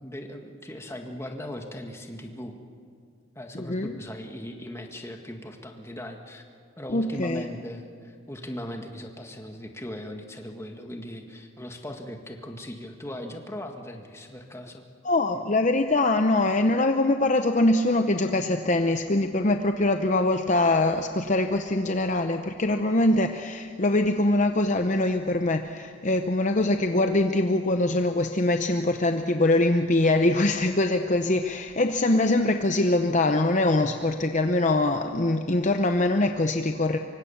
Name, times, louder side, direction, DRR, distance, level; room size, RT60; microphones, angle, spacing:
voice 1, 0.0-2.6 3.4-6.4 6.8-14.9, left 1 dB, 15° left, 4 dB, 1.8 m, -38 dB
voice 2, 3.5-3.9 6.9-7.4 15.0-37.0, left 2 dB, 35° left, 6 dB, 0.8 m, -23 dB
25.0 x 24.5 x 7.2 m, 2.4 s
head